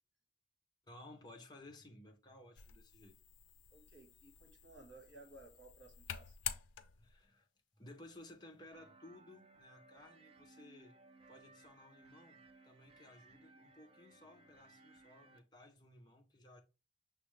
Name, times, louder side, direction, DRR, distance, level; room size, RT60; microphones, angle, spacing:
voice 1, 0.8-3.1 7.0-7.5 7.8-10.9 11.3-16.6, left 1 dB, 20° left, 0.7 m, -57 dB
sound 1, 2.6-7.3, left 10 dB, 80° left, 0.4 m, -48 dB
voice 2, 3.7-6.4, right 2 dB, 65° right, 1.4 m, -58 dB
sound 2, 8.7-15.4, right 3 dB, 30° right, 0.3 m, -62 dB
6.2 x 2.4 x 3.1 m
head